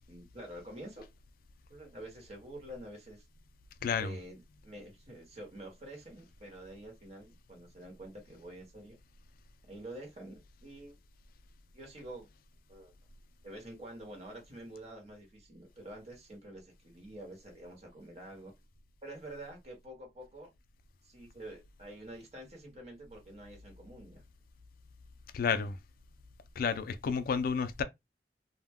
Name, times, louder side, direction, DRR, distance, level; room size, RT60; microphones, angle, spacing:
voice 1, 0.1-1.0 1.7-3.3 4.0-9.0 9.7-10.9 11.7-12.3 12.7-12.9 13.4-18.5 19.0-20.5 21.0-24.2, right 1 dB, 40° right, 1.1 m, -48 dB
voice 2, 3.8-4.2 25.3-25.8 26.6-27.8, left 6 dB, 55° left, 0.3 m, -31 dB
2.1 x 2.1 x 3.4 m
head